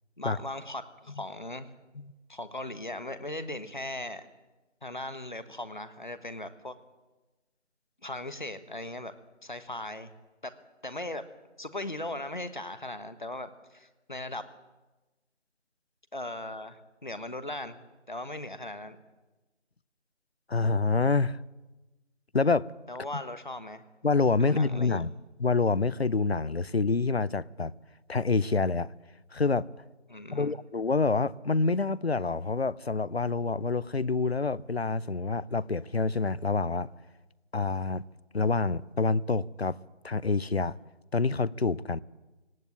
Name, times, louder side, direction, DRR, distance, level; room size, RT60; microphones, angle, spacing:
voice 1, 0.2-1.7 2.3-4.3 4.8-6.8 8.0-9.1 9.4-10.1 10.4-10.6 10.8-11.3 11.6-14.5 16.1-19.0 22.9-23.8 24.4-25.0 30.1-30.5, left 1 dB, 40° left, 1.3 m, -38 dB
voice 2, 20.5-21.4 22.3-22.7 23.1-23.2 24.0-25.1 25.4-27.7 28.1-28.9 29.3-29.7 30.3-36.9 37.5-38.0 38.3-39.8 40.0-40.7 41.1-42.0, left 4 dB, 60° left, 0.6 m, -27 dB
18.5 x 16.0 x 9.0 m
figure-of-eight pair, 170°, 36 cm